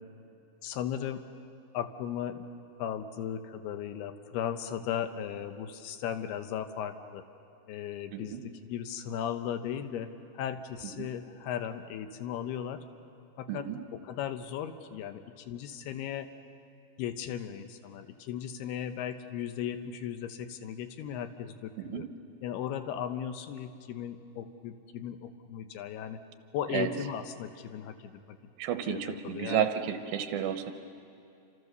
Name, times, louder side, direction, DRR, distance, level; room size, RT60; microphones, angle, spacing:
voice 1, 0.6-1.2 1.7-2.4 2.8-7.2 7.7-10.1 10.3-12.8 13.4-13.6 13.9-16.3 17.0-22.1 22.4-26.2 26.5-28.4 28.9-29.7, left 9 dB, 80° left, 8 dB, 3.0 m, -36 dB
voice 2, 8.1-8.4 10.8-11.1 13.5-13.8 21.8-22.0 26.7-26.9 28.6-30.7, right 9 dB, 70° right, 7 dB, 2.8 m, -32 dB
28.5 x 27.0 x 6.9 m, 2.7 s
omnidirectional pair, 4.7 m